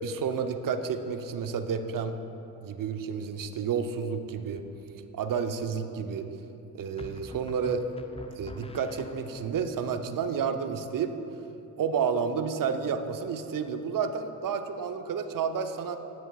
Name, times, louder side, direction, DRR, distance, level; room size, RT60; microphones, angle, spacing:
voice 1, 0.0-2.2 2.6-4.6 5.1-6.3 6.7-7.8 8.4-11.1 11.8-16.0, right 6 dB, 45° right, 8 dB, 0.8 m, -30 dB
sound 1, 4.3-4.9 7.0-9.6, left 2 dB, 15° left, 0.5 m, -46 dB
17.0 x 6.3 x 2.4 m, 2.9 s
hypercardioid pair, 45°, 48 cm